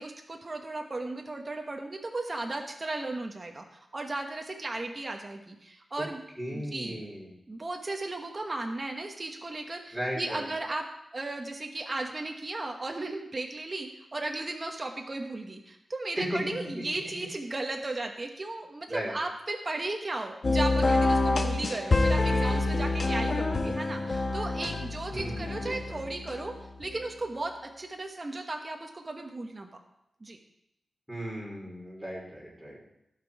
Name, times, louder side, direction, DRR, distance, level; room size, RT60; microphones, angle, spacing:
voice 1, 0.0-6.2 6.5-7.1 7.5-10.8 11.1-26.5 26.8-29.7 30.2-30.4, right 2 dB, 25° right, 3 dB, 1.0 m, -35 dB
voice 2, 6.4-7.3 9.9-10.5 16.2-16.4 18.9-19.1 25.1-26.0 31.1-32.8, equal, 5° right, -4 dB, 3.1 m, -36 dB
sound 1, 20.4-26.9, left 2 dB, 40° left, 0.9 m, -27 dB
15.5 x 6.0 x 4.7 m, 0.84 s
wide cardioid pair, 170°, 0 cm